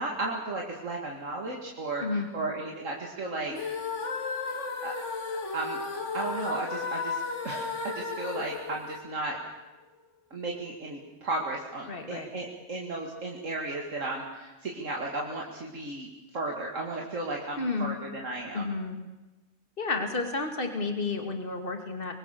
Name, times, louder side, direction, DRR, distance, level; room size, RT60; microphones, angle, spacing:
voice 1, 0.0-3.8 4.8-4.9 5.5-5.8 6.1-7.2 7.4-9.4 10.3-16.1 16.3-18.6, right 2 dB, 75° right, -1 dB, 2.8 m, -34 dB
sound 1, 3.5-9.7, left 4 dB, 70° left, 2.2 m, -34 dB
voice 2, 11.9-12.3 17.6-18.0 18.5-19.0 19.8-22.1, left 3 dB, 45° left, 5 dB, 2.6 m, -31 dB
25.5 x 21.5 x 6.8 m, 1.1 s
omnidirectional pair, 1.3 m